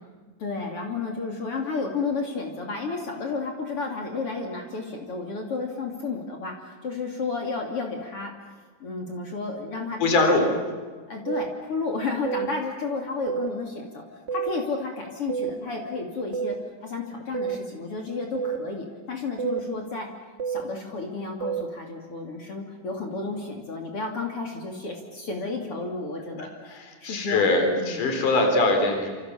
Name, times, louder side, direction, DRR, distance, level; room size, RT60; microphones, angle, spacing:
voice 1, 0.4-8.3 8.8-10.6 11.1-14.0 14.3-16.5 16.8-20.1 20.5-26.5 27.0-28.2, left 3 dB, 45° left, 2 dB, 3.6 m, -32 dB
voice 2, 10.0-10.5 26.4-29.1, left 2 dB, 75° left, 4 dB, 5.4 m, -22 dB
sound 1, 11.3-11.5 12.3-12.5 13.3-13.5 14.3-14.5 15.3-15.5 16.3-16.5 17.3-17.6 18.4-18.6 19.4-19.6 20.4-20.6 21.4-21.6, right 8 dB, 75° right, 0.6 m, -28 dB
28.5 x 27.5 x 7.4 m, 1.5 s
omnidirectional pair, 3.7 m